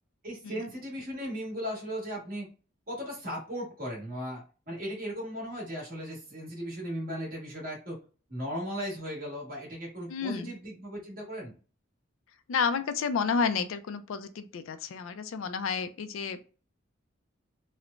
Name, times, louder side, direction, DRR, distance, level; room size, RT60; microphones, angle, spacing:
voice 1, 0.2-2.5 2.9-8.0 8.3-11.5, equal, 45° right, -3 dB, 1.3 m, -37 dB
voice 2, 10.1-10.5 12.5-16.4, left 5 dB, 90° left, 11 dB, 0.4 m, -31 dB
3.1 x 2.0 x 2.4 m, 0.35 s
head